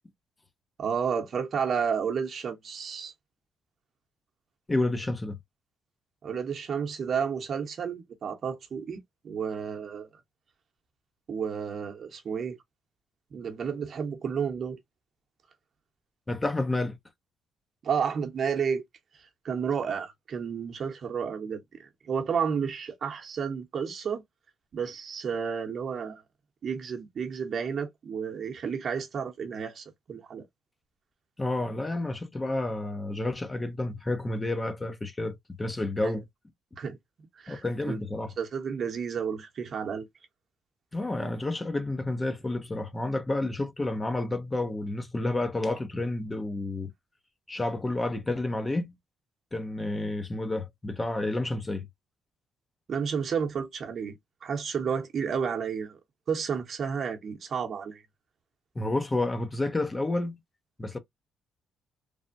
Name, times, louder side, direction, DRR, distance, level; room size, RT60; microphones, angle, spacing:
voice 1, 0.8-3.1 6.2-10.1 11.3-12.6 13.3-14.8 17.8-18.8 19.2-24.2 24.7-26.2 26.6-30.5 36.0-36.2 36.8-37.0 37.4-38.0 38.4-40.1 52.9-54.2 54.4-56.0 56.3-58.0, right 6 dB, 55° right, 0.8 m, -31 dB
voice 2, 4.7-5.4 16.3-17.0 31.4-36.2 37.5-38.3 40.9-46.9 47.5-49.0 49.5-51.9 58.8-60.4 60.8-61.0, left 2 dB, 20° left, 0.5 m, -30 dB
3.3 x 2.1 x 2.5 m
cardioid pair, 90°, 0 cm